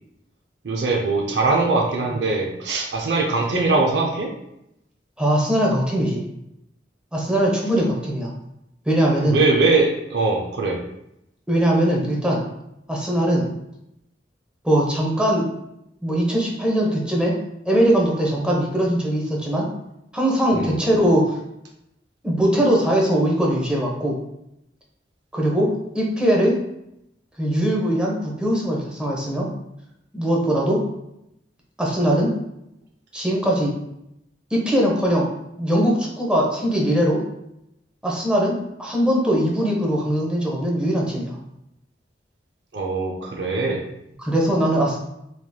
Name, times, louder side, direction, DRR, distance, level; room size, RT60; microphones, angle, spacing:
voice 1, 0.6-4.3 9.2-10.8 20.5-20.7 42.7-43.8, right 3 dB, 70° right, 0 dB, 0.5 m, -21 dB
voice 2, 5.2-6.2 7.1-8.3 8.9-9.4 11.5-12.4 12.9-13.5 14.6-15.5 16.0-17.4 17.7-19.7 20.1-21.4 22.2-24.2 25.3-26.6 27.4-29.5 30.1-30.8 31.8-32.3 33.1-33.7 34.5-35.3 35.6-37.2 38.0-41.4 44.2-45.0, equal, 5° right, -3 dB, 0.7 m, -21 dB
3.3 x 2.9 x 2.2 m, 0.82 s
head